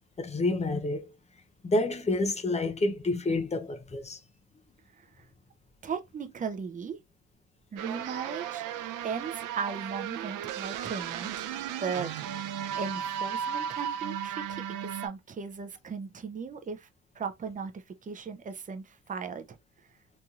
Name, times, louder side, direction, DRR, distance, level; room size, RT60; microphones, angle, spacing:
voice 1, 0.2-1.1 1.6-4.2, left 2 dB, 20° left, 0.5 m, -28 dB
voice 2, 5.8-7.0 7.7-8.6 9.0-11.5 11.8-12.2 12.7-16.9 17.2-19.6, right 6 dB, 25° right, 0.5 m, -37 dB
sound 1, 7.8-15.1, right 9 dB, 80° right, 0.5 m, -35 dB
3.0 x 2.6 x 2.3 m
cardioid pair, 105°, 32 cm